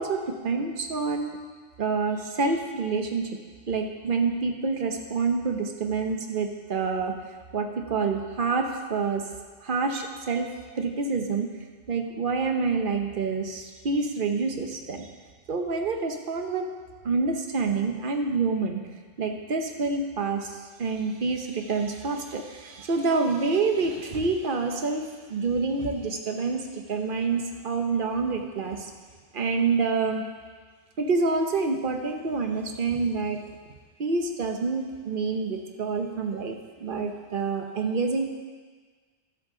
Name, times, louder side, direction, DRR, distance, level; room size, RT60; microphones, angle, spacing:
voice 1, 0.0-1.4 1.8-3.3 3.7-7.1 7.5-9.2 9.6-10.5 10.8-11.5 11.9-15.1 15.5-16.7 17.0-18.8 19.2-28.9 29.3-30.2 31.0-33.4 34.0-38.2, right 4 dB, 50° right, 4 dB, 1.0 m, -27 dB
12.0 x 7.7 x 3.8 m, 1.5 s
omnidirectional pair, 1.1 m